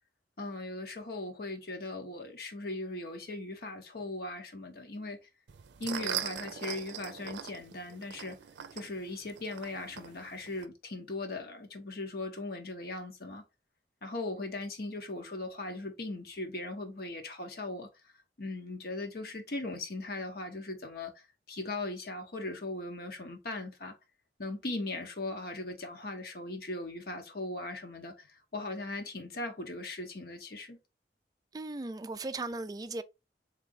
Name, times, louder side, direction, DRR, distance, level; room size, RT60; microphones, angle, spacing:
voice 1, 0.4-5.3 5.8-8.4 8.7-13.4 14.0-18.1 18.4-23.9 24.4-30.8, left 2 dB, 60° left, 0.9 m, -39 dB
sound 1, 5.5-10.7, right 9 dB, 85° right, 0.5 m, -41 dB
voice 2, 31.5-33.0, right 2 dB, 20° right, 0.3 m, -37 dB
3.8 x 3.3 x 3.8 m
head